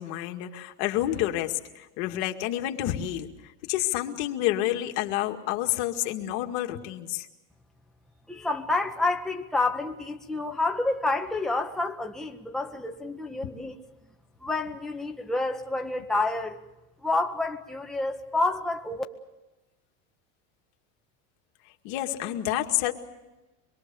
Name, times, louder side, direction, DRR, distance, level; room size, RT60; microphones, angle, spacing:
voice 1, 0.0-7.3 21.8-22.9, left 13 dB, 70° left, 2.2 m, -29 dB
voice 2, 8.3-13.8 14.4-16.6 17.0-19.0, left 2 dB, ahead, 1.6 m, -29 dB
25.5 x 22.0 x 7.0 m
supercardioid pair, 125°, 36 cm